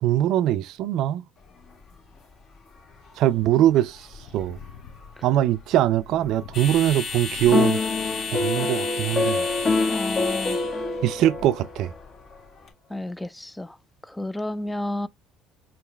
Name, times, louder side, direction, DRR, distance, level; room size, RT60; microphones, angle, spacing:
voice 1, 0.0-1.2 3.2-4.1 4.3-4.6 5.2-7.8 8.3-9.5 11.0-11.9, right 13 dB, 70° right, 0.4 m, -22 dB
sound 1, 1.4-12.7, left 5 dB, 50° left, 2.0 m, -36 dB
sound 2, 3.9-8.7 9.1-11.5, left 5 dB, 70° left, 1.2 m, -46 dB
sound 3, 7.5-12.0, left 3 dB, 35° left, 0.9 m, -25 dB
voice 2, 9.9-10.6 12.9-13.7 14.1-15.1, left 1 dB, 10° left, 0.3 m, -31 dB
4.9 x 3.0 x 3.1 m
supercardioid pair, 90°, 0 cm